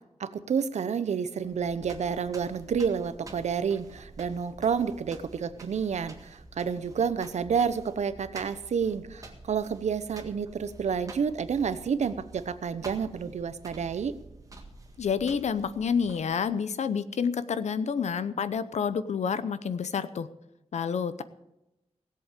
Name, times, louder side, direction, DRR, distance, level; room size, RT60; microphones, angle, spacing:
voice 1, 0.2-14.2, right 6 dB, 80° right, 13 dB, 0.8 m, -29 dB
sound 1, 1.4-16.5, right 2 dB, 30° right, 1.8 m, -49 dB
voice 2, 15.0-20.3 20.7-21.2, left 6 dB, 80° left, 14 dB, 0.8 m, -29 dB
17.0 x 7.8 x 6.6 m, 0.91 s
wide cardioid pair, 170°, 12 cm